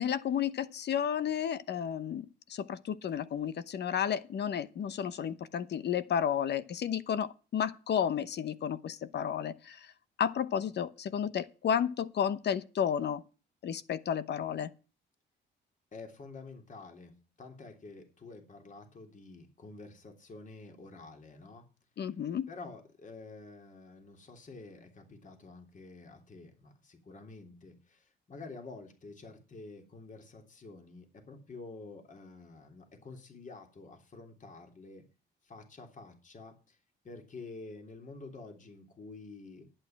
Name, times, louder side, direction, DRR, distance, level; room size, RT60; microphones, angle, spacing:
voice 1, 0.0-9.8 10.2-13.2 13.6-14.7 22.0-22.5, left 8 dB, 60° left, 1.0 m, -32 dB
voice 2, 15.9-21.6 22.5-35.0 35.4-36.8 37.0-39.7, left 3 dB, 40° left, 3.3 m, -49 dB
11.5 x 8.9 x 6.0 m
cardioid pair, 90°, 20 cm